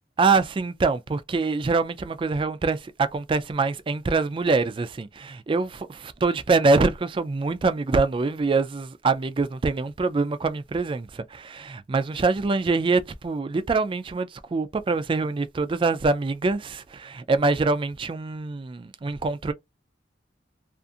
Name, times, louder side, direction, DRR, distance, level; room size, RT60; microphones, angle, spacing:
voice 1, 0.2-19.5, right 3 dB, 30° right, 0.3 m, -24 dB
2.5 x 2.4 x 2.6 m
head